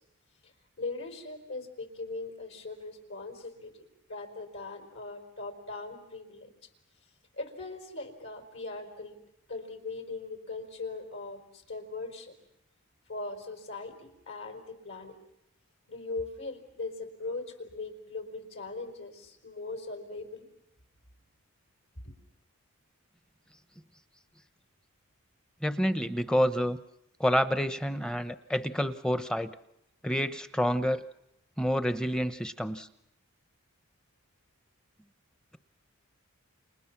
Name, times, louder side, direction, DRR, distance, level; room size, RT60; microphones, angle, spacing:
voice 1, 0.8-3.8 4.1-6.5 7.4-9.2 9.5-12.3 13.1-15.1 15.9-20.5 22.0-22.1, left 3 dB, 65° left, 5 dB, 4.8 m, -40 dB
voice 2, 25.6-26.8 27.2-29.6 30.0-31.0 31.6-32.9, equal, 5° left, 11 dB, 0.9 m, -28 dB
30.0 x 28.5 x 6.0 m, 0.83 s
head